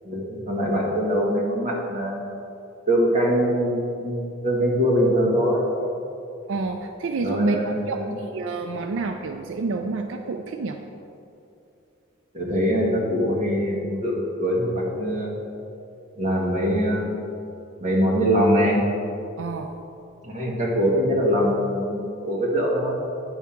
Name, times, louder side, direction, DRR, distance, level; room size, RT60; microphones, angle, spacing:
voice 1, 0.0-2.2 2.9-5.7 7.2-8.1 12.3-15.3 16.2-17.2 17.8-18.8 20.2-23.0, equal, 40° right, -4 dB, 1.6 m, -23 dB
voice 2, 6.5-7.6 7.9-10.8 19.4-19.7, right 3 dB, 80° right, 5 dB, 0.4 m, -28 dB
9.5 x 3.6 x 5.9 m, 2.6 s
head